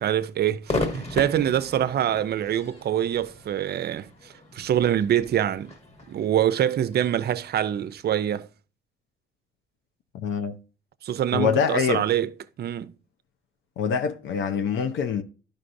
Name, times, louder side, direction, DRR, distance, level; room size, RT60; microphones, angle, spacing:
voice 1, 0.0-4.1 4.5-5.7 6.1-8.5 11.0-12.3 12.6-13.0, right 10 dB, 55° right, 0.5 m, -25 dB
Crowd / Fireworks, 0.7-8.0, left 2 dB, 30° left, 1.5 m, -36 dB
voice 2, 10.1-10.6 11.3-12.1 13.8-15.2, left 7 dB, 75° left, 0.6 m, -25 dB
11.0 x 5.2 x 2.6 m
cardioid pair, 90°, 20 cm